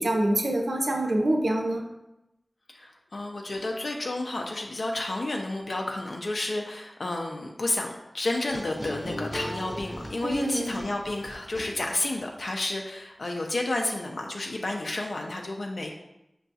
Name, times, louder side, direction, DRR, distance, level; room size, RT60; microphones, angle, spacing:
voice 1, 0.0-1.8 10.2-10.7, right 1 dB, 75° right, 1 dB, 0.6 m, -25 dB
voice 2, 2.7-15.9, left 2 dB, 80° left, 1 dB, 0.3 m, -31 dB
sound 1, 8.5-12.2, equal, 25° right, 0.5 m, -38 dB
5.3 x 2.3 x 2.6 m, 0.91 s
wide cardioid pair, 70°, 0 cm